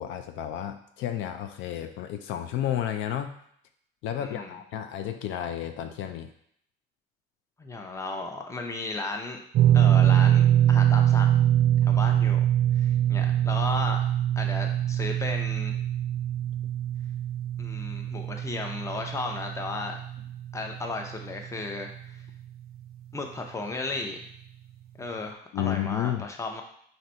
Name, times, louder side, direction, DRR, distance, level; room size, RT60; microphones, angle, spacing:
voice 1, 0.0-3.3 4.0-6.3 25.5-26.3, left 11 dB, 80° left, 7 dB, 0.5 m, -31 dB
voice 2, 4.2-4.6 7.6-9.4 9.7-11.4 11.8-12.4 12.7-14.0 14.4-15.7 17.6-20.0 20.5-22.1 23.1-24.3 25.0-26.6, left 3 dB, 15° left, 3 dB, 0.6 m, -34 dB
sound 1, 9.5-21.8 22.0-22.3 24.0-24.1, right 11 dB, 50° right, 0.4 m, -23 dB
3.9 x 2.7 x 4.3 m, 0.67 s
cardioid pair, 120°, 20 cm